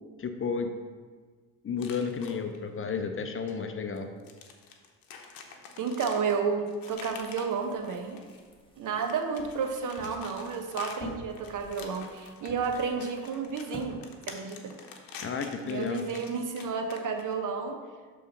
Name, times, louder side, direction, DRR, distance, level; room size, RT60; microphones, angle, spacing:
voice 1, 0.2-0.7 1.6-4.1 15.2-16.0, left 5 dB, 35° left, 7 dB, 0.6 m, -32 dB
sound 1, 1.8-2.6 3.5-3.6 4.0-8.5 8.9-17.4, left 6 dB, 60° left, 1.0 m, -47 dB
voice 2, 5.8-8.2 8.8-14.0 14.3-14.7 15.7-17.8, right 5 dB, 50° right, 5 dB, 1.0 m, -31 dB
sound 2, 6.9-13.9, left 2 dB, 15° left, 1.3 m, -49 dB
6.8 x 3.8 x 5.2 m, 1.5 s
supercardioid pair, 80°, 39 cm